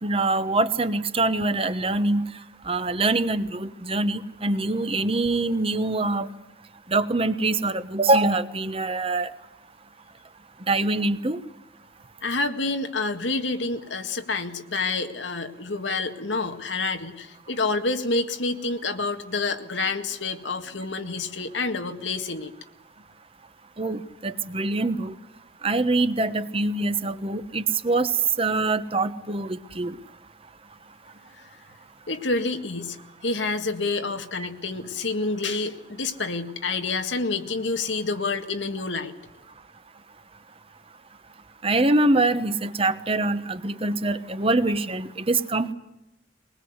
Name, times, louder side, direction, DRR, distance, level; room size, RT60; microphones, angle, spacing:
voice 1, 0.0-2.3 2.7-6.3 6.9-9.3 10.7-11.4 23.8-25.1 25.6-28.1 28.4-29.9 41.6-45.7, right 2 dB, 30° right, 11 dB, 1.2 m, -24 dB
voice 2, 12.2-22.5 32.1-39.1, left 3 dB, 85° left, 7 dB, 2.0 m, -28 dB
22.5 x 20.0 x 8.1 m, 0.87 s
head